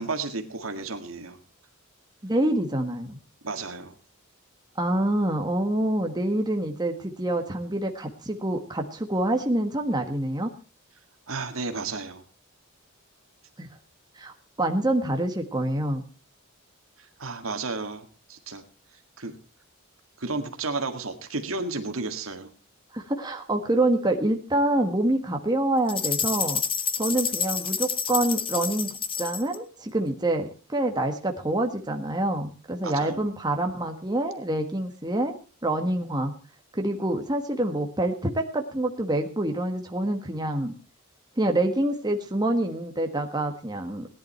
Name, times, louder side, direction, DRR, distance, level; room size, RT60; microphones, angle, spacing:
voice 1, 0.0-1.4 3.4-3.9 11.3-12.2 17.0-18.6 19.2-19.4 20.2-22.5 32.8-33.2, right 3 dB, 75° right, 6 dB, 1.9 m, -32 dB
voice 2, 2.2-3.2 4.8-10.5 13.6-13.7 14.2-16.0 22.9-26.6 27.0-28.9 29.2-35.3 35.6-36.3 36.7-40.7 41.4-44.1, right 1 dB, 20° right, 4 dB, 1.5 m, -26 dB
sound 1, 25.9-29.6, left 7 dB, 25° left, 0.8 m, -29 dB
18.0 x 11.0 x 4.4 m, 0.36 s
head